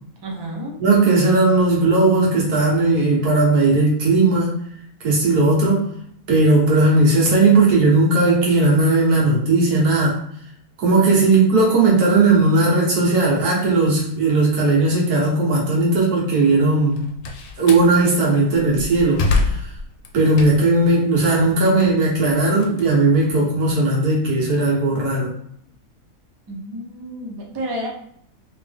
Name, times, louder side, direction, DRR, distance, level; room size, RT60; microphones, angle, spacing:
voice 1, 0.2-0.8 26.5-27.9, equal, 35° right, -1 dB, 0.4 m, -30 dB
voice 2, 0.8-4.6 5.0-5.9 6.3-10.2 10.8-17.0 17.6-19.7 20.1-25.3, right 2 dB, 70° right, -4 dB, 1.7 m, -17 dB
Slam, 16.8-17.9 18.5-20.8 21.3-23.6, left 3 dB, 80° left, 1.2 m, -26 dB
3.3 x 2.9 x 3.4 m, 0.67 s
omnidirectional pair, 1.7 m